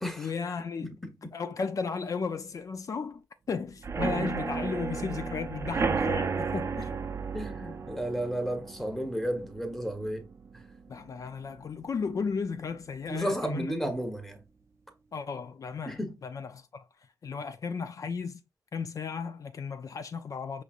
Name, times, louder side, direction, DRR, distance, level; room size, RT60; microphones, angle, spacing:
voice 1, 0.2-0.9 1.3-3.2 3.5-6.9 10.9-13.7 15.1-16.8 17.2-18.4 18.7-20.6, left 5 dB, 50° left, 0.6 m, -34 dB
voice 2, 0.8-1.3 7.3-10.2 13.1-14.4 15.9-16.2, equal, 5° left, 1.1 m, -33 dB
sound 1, 3.8-11.5 11.8-12.2 12.5-12.6 13.0-13.1, right 5 dB, 40° right, 0.5 m, -33 dB
5.3 x 3.2 x 2.5 m
cardioid pair, 90°, 7 cm